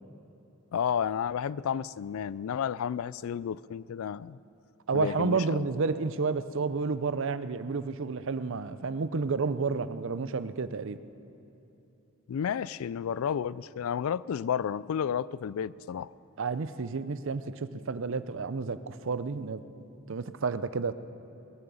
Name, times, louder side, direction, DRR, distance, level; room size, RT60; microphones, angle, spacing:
voice 1, 0.7-4.4 4.9-5.6 12.3-16.1, left 8 dB, 80° left, 20 dB, 0.3 m, -31 dB
voice 2, 4.9-11.0 16.4-19.6 20.1-20.9, right 4 dB, 65° right, 13 dB, 0.6 m, -30 dB
21.0 x 8.8 x 7.0 m, 2.9 s
head